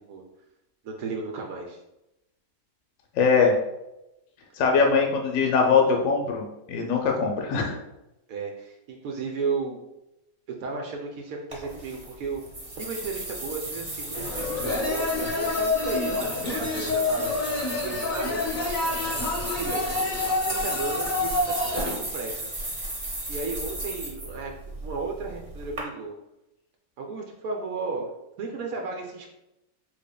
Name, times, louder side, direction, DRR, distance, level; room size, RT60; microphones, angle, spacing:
voice 1, 0.8-1.8 8.3-9.8 10.6-12.4 12.8-17.3 17.8-18.4 19.1-20.0 20.4-22.4 23.3-24.5 24.8-26.1 27.0-28.1 28.4-29.3, right 4 dB, 75° right, 1 dB, 1.0 m, -34 dB
voice 2, 3.1-3.5 4.6-7.8, left 5 dB, 70° left, 1 dB, 0.9 m, -22 dB
sound 1, 11.5-25.8, right 1 dB, 30° right, 1.0 m, -35 dB
sound 2, 14.1-22.0, left 3 dB, 40° left, 0.7 m, -28 dB
4.1 x 3.2 x 2.2 m, 0.91 s
omnidirectional pair, 1.5 m